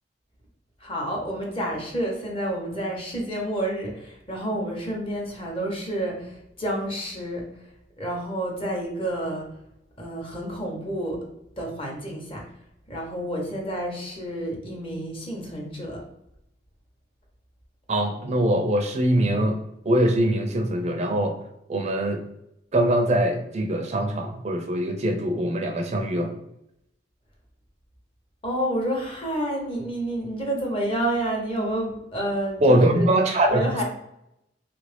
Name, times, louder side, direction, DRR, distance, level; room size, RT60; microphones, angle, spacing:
voice 1, 0.8-7.4 8.0-9.5 10.0-11.2 11.6-12.4 12.9-16.0 28.4-33.1 33.5-33.8, right 1 dB, 30° left, -1 dB, 0.9 m, -29 dB
voice 2, 17.9-19.6 19.9-21.3 21.7-22.2 22.7-26.3 32.6-33.6, right 1 dB, 40° right, 4 dB, 0.4 m, -22 dB
3.2 x 2.5 x 3.2 m, 0.82 s
head